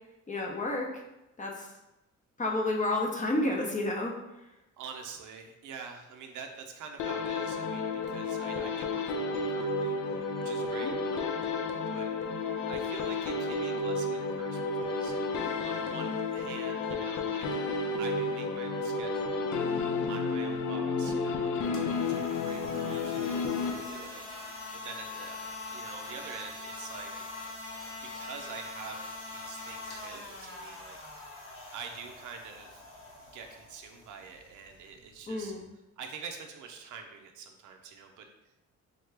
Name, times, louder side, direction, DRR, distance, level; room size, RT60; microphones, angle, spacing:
voice 1, 0.3-0.9 1.4-1.7 2.4-4.2 10.8-10.9 35.3-35.6, left 2 dB, 25° left, 0 dB, 0.6 m, -30 dB
voice 2, 4.8-11.5 11.9-12.1 12.7-15.3 15.6-17.5 18.0-19.6 20.1-24.5 24.8-27.1 28.0-31.3 31.7-32.8 33.2-35.5 36.0-38.3, right 6 dB, 80° right, 3 dB, 0.5 m, -46 dB
sound 1, 7.0-24.2, left 3 dB, 75° left, 0.5 m, -32 dB
sound 2, 21.7-35.6, left 2 dB, 45° left, 1.0 m, -44 dB
3.6 x 2.2 x 3.2 m, 0.97 s
cardioid pair, 90°, 30 cm